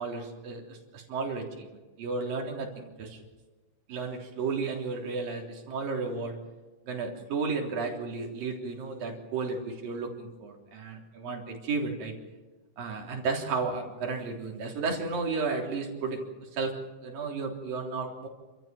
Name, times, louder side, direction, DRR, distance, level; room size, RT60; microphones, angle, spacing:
voice 1, 0.0-1.7 2.0-3.2 3.9-6.3 6.9-12.1 12.8-16.7 17.0-18.3, right 4 dB, 50° right, 1 dB, 4.9 m, -33 dB
29.5 x 14.0 x 9.0 m, 1.2 s
omnidirectional pair, 5.4 m